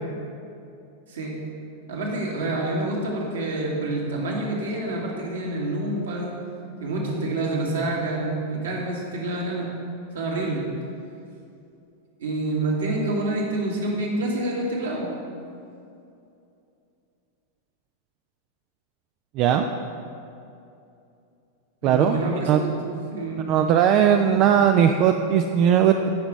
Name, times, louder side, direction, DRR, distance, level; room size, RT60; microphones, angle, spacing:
voice 1, 1.9-6.3 6.8-9.7 10.1-10.6 12.2-15.1 21.8-22.7 23.1-23.5 24.1-24.3, right 2 dB, 65° right, -3 dB, 1.9 m, -27 dB
voice 2, 19.4-19.7 21.8-22.2 22.5-22.6 23.5-26.1, right 9 dB, 40° right, 6 dB, 0.4 m, -18 dB
15.5 x 6.0 x 3.1 m, 2.6 s
figure-of-eight pair, 90°, 0 cm